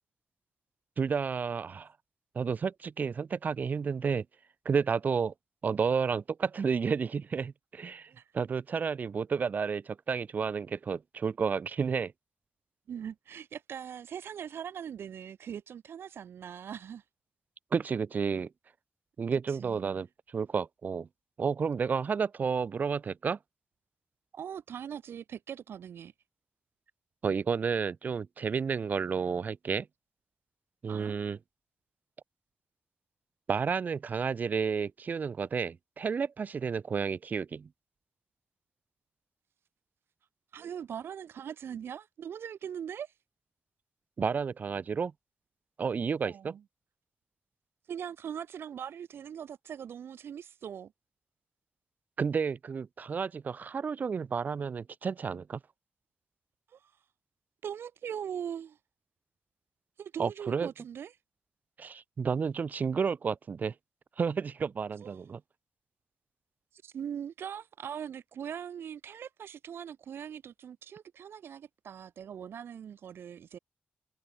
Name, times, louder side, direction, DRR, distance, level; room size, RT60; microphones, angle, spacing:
voice 1, 1.0-1.9 2.3-4.3 4.6-5.3 5.6-12.1 17.7-18.5 19.2-21.1 21.4-23.4 27.2-29.9 30.8-31.4 33.5-37.7 44.2-45.1 45.8-46.5 52.2-55.6 60.2-60.7 61.8-63.7 64.2-65.4, right 6 dB, 45° right, 0.6 m, -31 dB
voice 2, 12.9-17.0 19.5-20.0 24.3-26.1 30.9-31.2 40.5-43.1 46.2-46.6 47.9-50.9 56.7-56.9 57.6-58.8 60.0-61.1 65.0-65.2 66.7-73.6, right 8 dB, 80° right, 1.6 m, -41 dB
wide cardioid pair, 115°, 4 cm